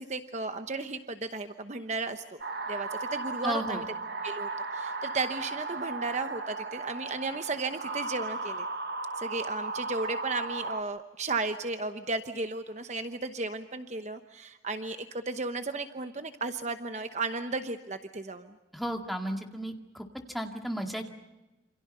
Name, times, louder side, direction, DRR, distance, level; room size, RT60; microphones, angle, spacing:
voice 1, 0.0-2.4 2.7-3.8 4.2-8.7 9.2-18.5, right 3 dB, 40° right, 8 dB, 1.0 m, -34 dB
sound 1, 2.4-10.8, right 3 dB, 55° right, 1.2 m, -36 dB
voice 2, 3.4-3.9 18.7-20.1 20.3-21.1, equal, ahead, 3 dB, 2.1 m, -34 dB
28.0 x 26.5 x 5.6 m, 1.0 s
head